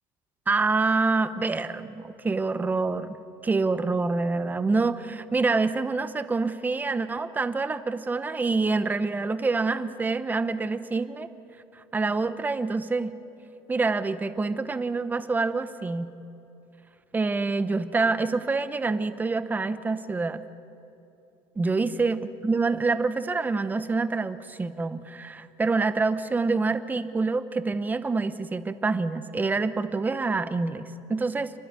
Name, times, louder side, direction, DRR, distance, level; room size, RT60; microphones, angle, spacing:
voice 1, 0.5-3.2 3.4-11.3 11.7-13.1 13.7-16.1 17.1-20.4 21.6-31.5, right 3 dB, 15° right, 11 dB, 1.0 m, -26 dB
29.5 x 12.0 x 9.7 m, 2.9 s
cardioid pair, 130°, 11 cm